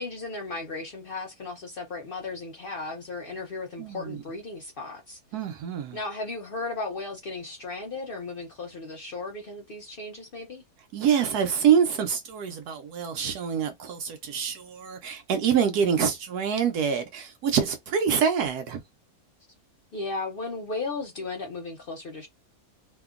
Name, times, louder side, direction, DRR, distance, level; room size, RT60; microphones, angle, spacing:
voice 1, 0.0-5.2 5.9-10.6 19.9-22.3, left 3 dB, 70° left, 0.5 m, -35 dB
voice 2, 3.8-4.2 5.3-6.0 10.9-18.8, right 7 dB, 75° right, 1.1 m, -26 dB
2.8 x 2.5 x 2.4 m
omnidirectional pair, 1.7 m